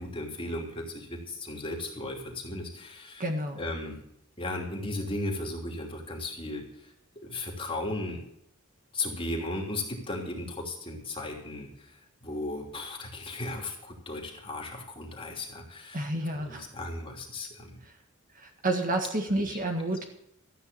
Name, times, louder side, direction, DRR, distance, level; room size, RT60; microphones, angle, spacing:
voice 1, 0.0-3.2 3.6-4.0 4.4-6.7 7.2-8.2 8.9-11.9 12.2-16.0 16.5-17.8 19.3-19.4, left 2 dB, 25° left, 0 dB, 2.9 m, -36 dB
voice 2, 3.2-3.6 15.9-16.7 17.8-17.9 18.4-20.0, right 1 dB, 40° right, 3 dB, 1.8 m, -30 dB
14.0 x 9.2 x 6.8 m, 0.76 s
head